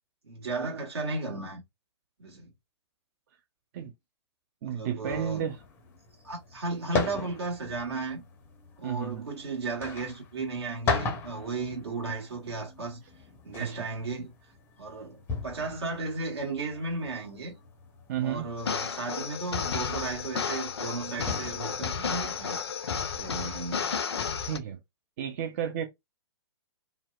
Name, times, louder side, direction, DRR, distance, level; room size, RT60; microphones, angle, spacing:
voice 1, 0.2-1.6 2.2-2.5 4.6-5.5 6.2-8.2 8.8-13.0 13.4-14.3 14.8-17.5 18.2-22.6 23.1-23.9, right 3 dB, 65° right, 1.3 m, -35 dB
voice 2, 4.6-5.6 8.8-9.3 13.6-13.9 18.1-18.5 24.5-24.8 25.2-25.9, right 9 dB, 35° right, 0.4 m, -32 dB
sound 1, 5.1-22.5, left 4 dB, 15° left, 0.5 m, -39 dB
sound 2, 18.6-24.6, left 6 dB, 65° left, 0.4 m, -32 dB
2.6 x 2.1 x 2.3 m
figure-of-eight pair, 115°, 15 cm